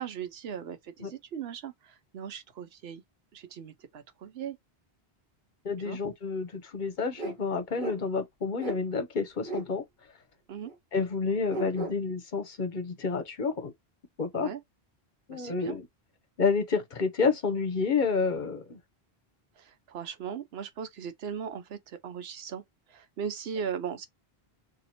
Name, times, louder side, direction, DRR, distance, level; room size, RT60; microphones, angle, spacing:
voice 1, 0.0-3.0 3.3-4.6 5.8-6.0 10.5-10.7 14.3-14.6 15.3-15.8 19.6-22.6 22.9-24.1, right 7 dB, 80° right, 0.9 m, -38 dB
voice 2, 5.6-9.8 10.9-13.7 14.2-14.5 15.3-15.9 16.4-18.8, left 4 dB, 55° left, 0.8 m, -29 dB
sound 1, 7.2-7.4 7.8-8.0 8.6-8.8 9.4-9.7 10.6-10.7 11.5-12.0, right 2 dB, 50° right, 1.2 m, -35 dB
2.8 x 2.5 x 4.1 m
omnidirectional pair, 1.1 m